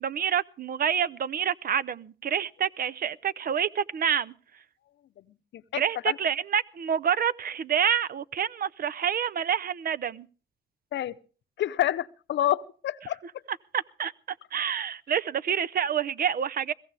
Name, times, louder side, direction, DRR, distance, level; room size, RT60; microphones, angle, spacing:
voice 1, 0.0-4.3 5.7-10.3 13.7-16.7, right 8 dB, 50° right, 0.6 m, -28 dB
voice 2, 5.2-6.2 10.9-11.1 11.6-13.4, left 12 dB, 65° left, 0.8 m, -29 dB
22.0 x 16.0 x 3.4 m
cardioid pair, 90°, 20 cm